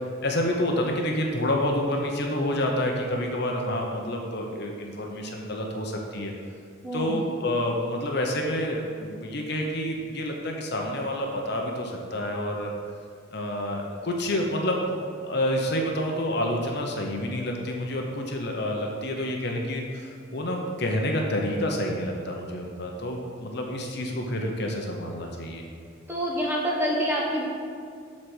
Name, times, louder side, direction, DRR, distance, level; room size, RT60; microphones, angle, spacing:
voice 1, 0.2-6.3 6.9-12.7 13.3-25.6, left 1 dB, 55° left, 1 dB, 0.9 m, -28 dB
voice 2, 6.8-7.3 26.1-27.4, equal, 10° right, -4 dB, 1.3 m, -27 dB
7.9 x 4.2 x 6.1 m, 2.2 s
head